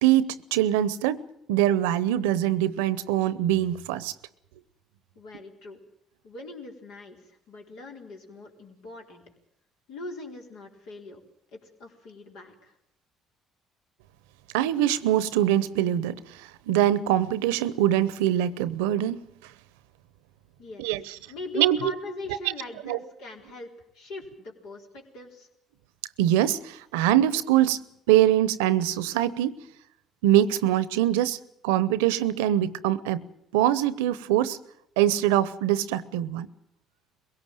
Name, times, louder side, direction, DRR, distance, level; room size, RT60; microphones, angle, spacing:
voice 1, 0.0-1.2 1.5-4.1 14.5-19.2 20.8-21.0 21.6-21.8 22.8-23.0 26.2-27.8 28.1-29.6 30.2-33.3 33.5-34.6 35.0-36.5, right 12 dB, 90° right, 0.8 m, -23 dB
voice 2, 5.2-5.8 6.2-9.2 9.9-11.2 11.5-12.8 20.6-20.9 21.3-25.5, left 2 dB, 80° left, 4.1 m, -41 dB
22.0 x 17.5 x 9.1 m
supercardioid pair, 65°, 0 cm